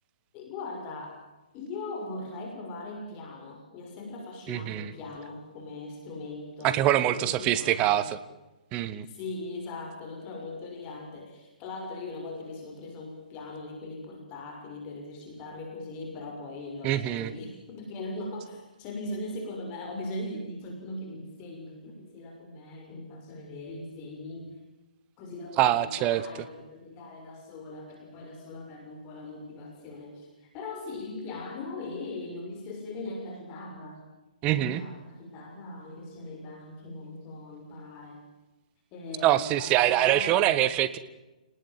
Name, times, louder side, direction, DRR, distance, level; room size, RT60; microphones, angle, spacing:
voice 1, 0.3-1.2 1.5-8.1 9.1-24.5 25.2-34.1 34.5-38.2 38.9-40.6, left 2 dB, 30° left, 2 dB, 6.4 m, -40 dB
voice 2, 4.5-4.9 6.6-8.2 8.7-9.1 16.8-17.3 25.6-26.2 34.4-34.8 39.2-41.0, right 13 dB, 25° right, 14 dB, 1.6 m, -24 dB
29.5 x 19.5 x 7.6 m, 1.1 s
hypercardioid pair, 140°, 5 cm